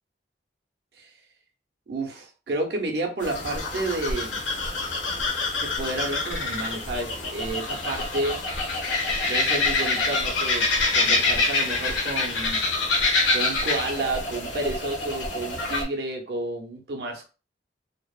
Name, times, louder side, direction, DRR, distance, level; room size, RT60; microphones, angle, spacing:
voice 1, 1.9-4.4 5.6-8.4 9.2-10.7 10.9-12.6 13.3-17.3, right 2 dB, 60° right, 3 dB, 0.6 m, -31 dB
sound 1, 3.2-15.8, left 3 dB, 80° left, 0.8 m, -26 dB
2.8 x 2.0 x 2.3 m, 0.33 s
head